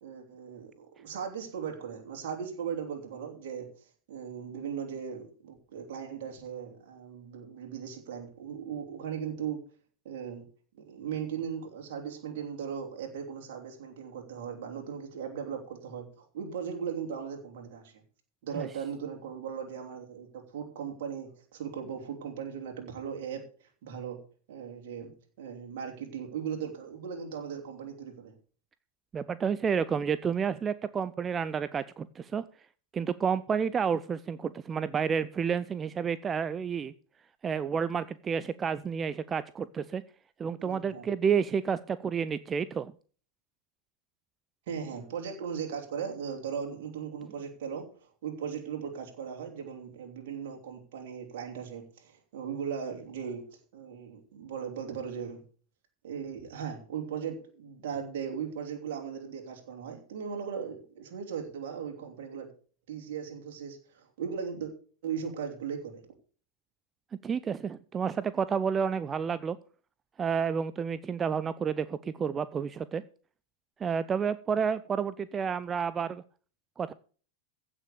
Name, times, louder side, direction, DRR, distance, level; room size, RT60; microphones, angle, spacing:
voice 1, 0.0-3.7 4.1-9.6 10.0-10.4 10.8-18.0 18.4-23.4 23.8-24.2 24.5-25.1 25.4-28.3 40.6-41.1 44.7-47.9 48.2-53.4 53.7-55.4 56.0-62.5 62.9-64.7 65.0-66.0, right 7 dB, 50° right, 2 dB, 3.2 m, -38 dB
voice 2, 29.1-32.4 32.9-36.9 37.4-40.0 40.4-42.9 67.2-69.6 70.2-73.0 73.8-76.2 76.8-76.9, right 6 dB, 20° right, 16 dB, 0.5 m, -30 dB
15.5 x 6.2 x 6.8 m, 0.42 s
figure-of-eight pair, 90°, 0 cm